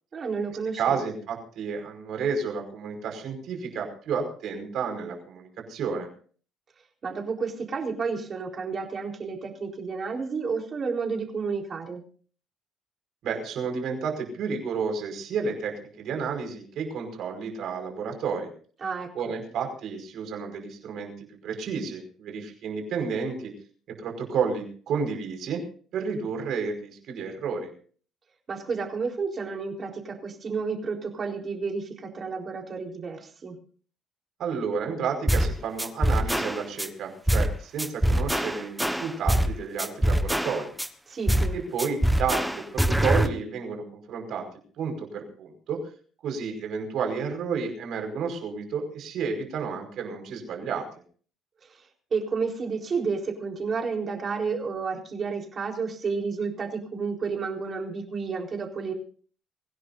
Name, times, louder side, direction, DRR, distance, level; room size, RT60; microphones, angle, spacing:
voice 1, 0.1-1.0 7.0-12.0 18.8-19.1 28.5-33.6 41.1-41.6 51.6-51.9 52.1-58.9, right 5 dB, 35° right, 2 dB, 4.1 m, -31 dB
voice 2, 0.8-6.1 13.2-18.5 19.1-23.5 23.9-25.6 25.9-27.7 34.4-40.7 41.5-44.5 44.8-45.8 46.2-50.9, right 5 dB, 60° right, 4 dB, 5.2 m, -31 dB
sound 1, 35.3-35.5 35.8-36.9 37.3-37.5 37.8-39.5 39.8-40.9 41.3-41.5 41.8-43.3, equal, ahead, 1.3 m, -23 dB
24.5 x 17.0 x 2.7 m, 0.44 s
cardioid pair, 140°, 0 cm